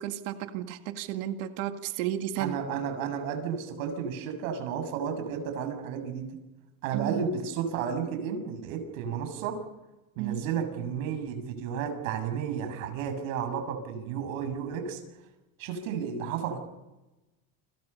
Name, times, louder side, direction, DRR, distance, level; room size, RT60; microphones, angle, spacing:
voice 1, 0.0-2.6 6.9-7.2 10.2-10.4, right 11 dB, 70° right, 6 dB, 2.2 m, -33 dB
voice 2, 2.4-6.3 6.8-9.6 10.2-15.0 15.6-16.6, right 7 dB, 90° right, 6 dB, 7.2 m, -32 dB
30.0 x 26.5 x 5.6 m, 1.0 s
cardioid pair, 175°, 39 cm